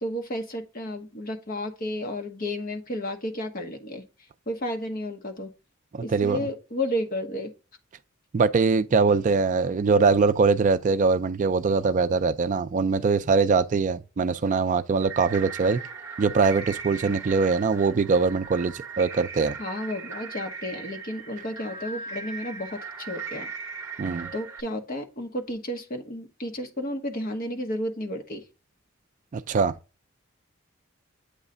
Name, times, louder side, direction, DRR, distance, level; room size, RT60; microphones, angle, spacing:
voice 1, 0.0-4.0 4.5-5.5 6.0-7.5 19.6-23.5 24.3-28.4, left 1 dB, 45° left, 1.1 m, -32 dB
voice 2, 5.9-6.5 8.3-15.8 16.2-19.5 24.0-24.3 29.3-29.7, right 4 dB, 40° right, 0.3 m, -22 dB
sound 1, 15.0-24.6, right 5 dB, 15° right, 1.1 m, -38 dB
8.1 x 3.2 x 3.8 m
head